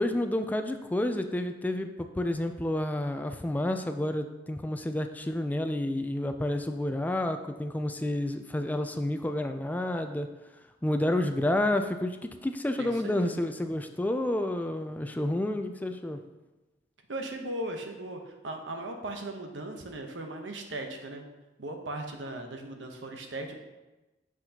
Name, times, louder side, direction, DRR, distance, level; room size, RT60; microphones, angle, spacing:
voice 1, 0.0-10.3 10.8-16.2, left 1 dB, 10° left, 7 dB, 0.3 m, -30 dB
voice 2, 12.7-13.4 17.1-21.3 21.6-23.6, right 1 dB, 85° right, 4 dB, 0.9 m, -38 dB
7.8 x 6.1 x 2.9 m, 1.1 s
head